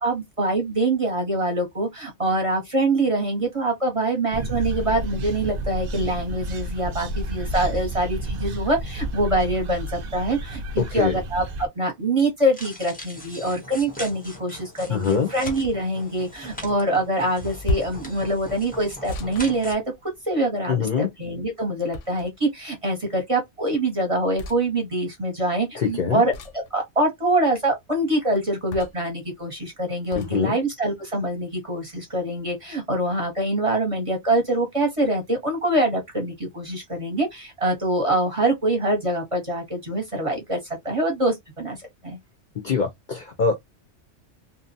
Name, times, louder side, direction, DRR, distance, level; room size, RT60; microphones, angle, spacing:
voice 1, 0.0-42.2, right 1 dB, 35° right, 0.7 m, -24 dB
sound 1, 4.3-11.7, right 1 dB, 60° right, 0.4 m, -31 dB
sound 2, 12.5-19.7, left 1 dB, 10° left, 0.5 m, -40 dB
voice 2, 14.9-15.3 20.7-21.1 25.7-26.2 30.2-30.6 42.6-43.5, left 6 dB, 55° left, 0.6 m, -24 dB
sound 3, 15.4-15.8 17.6-18.1 19.1-20.3 21.9-22.5 24.4-24.6 26.3-26.7 28.7-29.1 30.1-30.3, left 2 dB, 80° left, 0.9 m, -32 dB
2.6 x 2.0 x 2.6 m
omnidirectional pair, 1.2 m